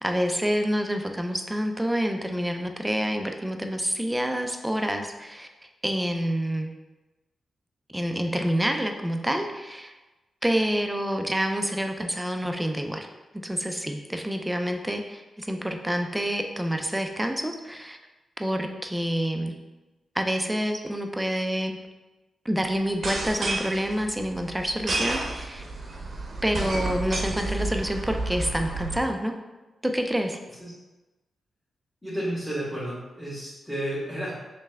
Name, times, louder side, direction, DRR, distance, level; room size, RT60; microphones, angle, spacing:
voice 1, 0.0-5.5 5.8-6.7 7.9-9.9 10.4-13.1 13.4-18.0 18.4-19.5 20.1-21.8 22.5-25.6 26.4-29.3 29.8-30.4, equal, 10° right, 4 dB, 0.4 m, -27 dB
sound 1, 22.9-29.0, right 2 dB, 55° right, 0.7 m, -31 dB
voice 2, 32.0-34.4, right 1 dB, 10° left, -9 dB, 1.4 m, -32 dB
3.3 x 3.3 x 3.3 m, 1.1 s
cardioid pair, 55°, 0 cm